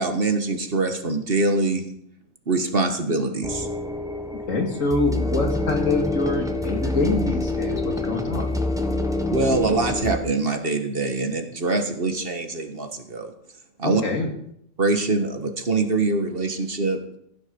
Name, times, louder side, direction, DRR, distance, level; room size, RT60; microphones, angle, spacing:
voice 1, 0.0-1.9 2.5-3.7 9.3-13.3 13.8-14.0 14.8-17.0, right 3 dB, 45° right, 6 dB, 1.6 m, -24 dB
sound 1, 3.4-10.2, left 2 dB, 5° right, 1.2 m, -26 dB
voice 2, 4.5-8.5 13.8-14.3, left 3 dB, 80° left, 2 dB, 2.6 m, -25 dB
15.5 x 9.8 x 5.3 m, 0.71 s
omnidirectional pair, 1.3 m